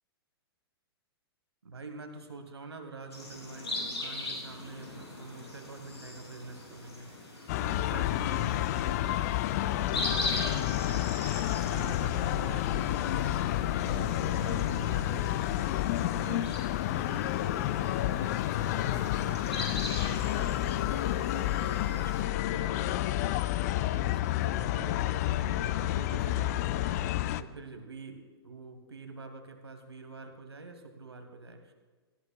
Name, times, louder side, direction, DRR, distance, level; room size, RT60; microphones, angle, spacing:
voice 1, 1.6-11.1 11.4-13.3 13.8-15.4 16.0-19.7 20.0-31.7, right 3 dB, 75° right, 5 dB, 1.4 m, -46 dB
sound 1, 3.1-22.2, left 2 dB, 75° left, 3.1 m, -41 dB
sound 2, 7.5-27.4, left 14 dB, 40° left, 0.4 m, -30 dB
17.5 x 13.0 x 2.3 m, 1.4 s
figure-of-eight pair, 105°, 14 cm